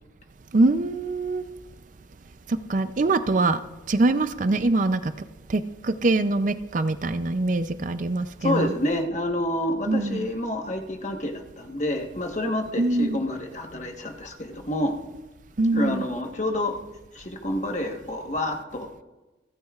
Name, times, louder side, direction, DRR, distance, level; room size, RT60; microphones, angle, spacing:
voice 1, 0.5-1.4 2.5-3.6 3.9-5.1 5.5-8.7 9.9-10.3 12.8-13.2 15.6-16.0, right 2 dB, 40° right, 11 dB, 0.5 m, -23 dB
voice 2, 8.4-15.0 15.7-16.8 17.1-18.9, left 1 dB, 40° left, 3 dB, 1.2 m, -28 dB
28.0 x 9.4 x 2.4 m, 1.1 s
head